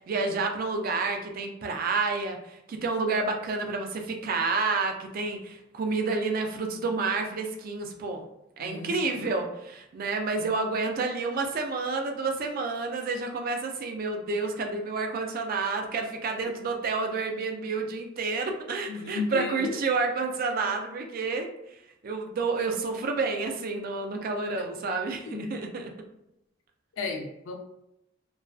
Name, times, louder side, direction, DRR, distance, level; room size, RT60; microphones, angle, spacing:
voice 1, 0.0-8.2 8.6-21.8 22.0-25.9, right 4 dB, 50° right, 4 dB, 0.4 m, -29 dB
voice 2, 8.6-9.3 18.9-19.7 24.4-24.7 25.2-25.6 26.9-27.6, left 4 dB, 80° left, 3 dB, 0.4 m, -35 dB
2.4 x 2.2 x 2.3 m, 0.83 s
head